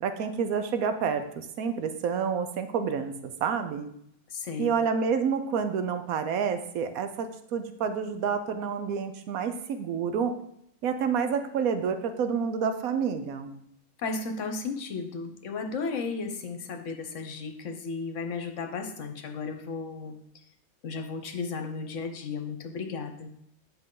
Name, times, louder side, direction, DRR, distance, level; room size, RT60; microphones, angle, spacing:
voice 1, 0.0-3.1 3.4-3.9 4.6-10.3 10.8-13.5, right 6 dB, 75° right, 9 dB, 1.2 m, -28 dB
voice 2, 4.3-4.7 14.0-20.2 20.8-23.3, left 4 dB, 60° left, 7 dB, 1.1 m, -34 dB
9.6 x 5.2 x 3.9 m, 0.74 s
omnidirectional pair, 1.5 m